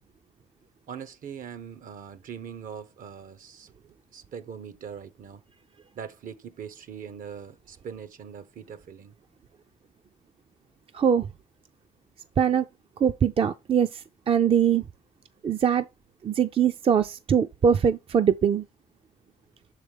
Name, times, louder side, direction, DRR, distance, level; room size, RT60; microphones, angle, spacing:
voice 1, 0.9-5.4 5.9-9.2, right 7 dB, 65° right, 0.8 m, -41 dB
voice 2, 10.9-11.3 12.4-12.6 13.0-14.8 15.4-15.8 16.2-18.6, right 8 dB, 40° right, 0.5 m, -22 dB
6.4 x 4.8 x 3.5 m
cardioid pair, 85°, 15 cm